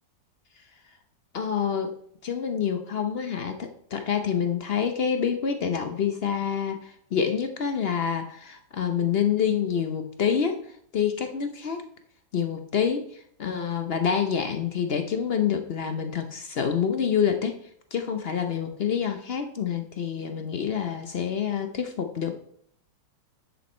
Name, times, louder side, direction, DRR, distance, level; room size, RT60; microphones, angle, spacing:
voice 1, 1.3-1.9 2.2-10.7 10.9-11.9 12.3-17.6 17.9-22.4, left 7 dB, 60° left, 7 dB, 0.6 m, -27 dB
10.0 x 5.6 x 4.3 m, 0.64 s
omnidirectional pair, 1.9 m